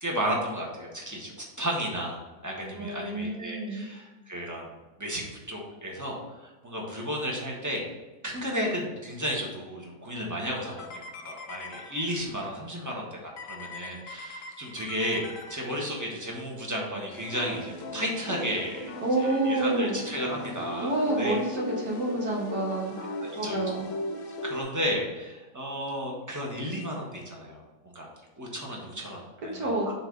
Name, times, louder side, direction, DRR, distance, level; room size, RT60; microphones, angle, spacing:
voice 1, 0.0-4.7 5.0-7.8 8.2-18.9 19.4-21.4 23.2-23.6 24.4-28.1 28.4-29.9, equal, 10° right, -2 dB, 1.1 m, -33 dB
voice 2, 2.7-3.9 19.0-20.0 20.8-23.0 23.4-23.9 29.5-29.9, right 2 dB, 80° right, -3 dB, 1.9 m, -28 dB
sound 1, 10.6-12.5 13.4-16.2 17.1-24.6, left 1 dB, 55° left, 1.1 m, -38 dB
6.1 x 3.9 x 5.1 m, 1.2 s
omnidirectional pair, 1.8 m